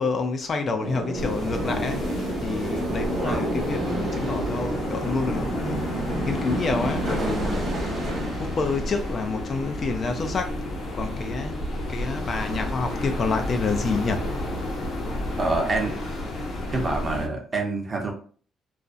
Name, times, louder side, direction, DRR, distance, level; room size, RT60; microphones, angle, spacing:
voice 1, 0.0-7.7 8.4-11.6 11.9-14.6, left 4 dB, 45° left, 0.4 m, -28 dB
sound 1, 0.8-10.3 10.6-10.9 11.2-11.5 11.7-12.5 13.2-13.4 13.7-14.3 14.7-14.8 15.0-16.3, right 1 dB, 60° right, 0.8 m, -31 dB
sound 2, 1.2-17.3, left 1 dB, 65° left, 0.9 m, -31 dB
voice 2, 15.4-16.0 16.7-18.1, right 2 dB, 30° right, 0.7 m, -26 dB
2.4 x 2.0 x 2.5 m
cardioid pair, 95°, 0 cm